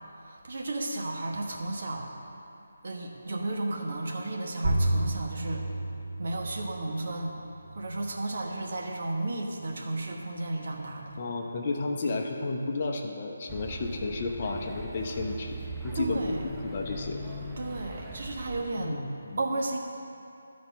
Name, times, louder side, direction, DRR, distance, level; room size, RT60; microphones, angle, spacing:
voice 1, 0.0-2.1 2.8-5.7 6.2-7.4 7.7-11.1 15.9-16.4 17.6-19.0 19.4-19.8, right 2 dB, 50° right, 0 dB, 1.2 m, -33 dB
sound 1, 4.6-9.7, right 1 dB, 35° right, 1.8 m, -33 dB
voice 2, 11.2-15.6 15.8-16.2 16.5-17.2 18.8-19.4, left 3 dB, 40° left, 2 dB, 0.8 m, -32 dB
sound 2, 13.5-18.7, right 1 dB, 5° right, 0.6 m, -40 dB
12.0 x 4.2 x 6.0 m, 2.7 s
figure-of-eight pair, 150°, 0 cm